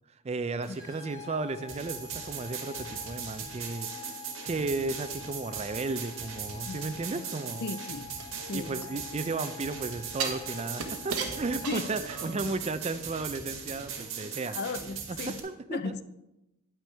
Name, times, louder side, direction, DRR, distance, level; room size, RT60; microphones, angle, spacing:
voice 1, 0.2-3.9 4.4-7.7 8.5-14.6 15.1-15.9, right 3 dB, 30° right, 0.4 m, -34 dB
sound 1, 0.6-12.0, left 11 dB, 15° left, 1.4 m, -47 dB
sound 2, 1.7-15.4, right 6 dB, 60° right, 1.5 m, -39 dB
voice 2, 6.7-7.3 7.6-8.1 8.5-8.9 11.7-11.9 14.5-15.4 15.7-16.0, left 4 dB, 45° left, 0.4 m, -36 dB
sound 3, 8.2-9.3 10.2-12.5 12.9-13.0, right 5 dB, 90° right, 1.2 m, -36 dB
9.7 x 9.0 x 3.4 m
head